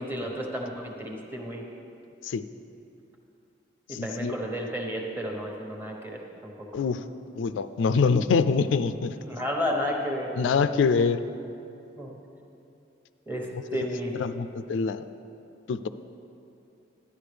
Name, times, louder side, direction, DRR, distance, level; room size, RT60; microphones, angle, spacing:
voice 1, 0.0-1.6 3.9-6.8 9.3-10.3 12.0-12.1 13.3-14.1, equal, 10° right, 0 dB, 1.0 m, -32 dB
voice 2, 3.9-4.3 6.7-7.0 7.4-9.2 10.4-11.2 14.2-15.1 15.7-15.9, left 5 dB, 85° left, 11 dB, 0.3 m, -24 dB
12.5 x 9.7 x 3.4 m, 2.7 s
head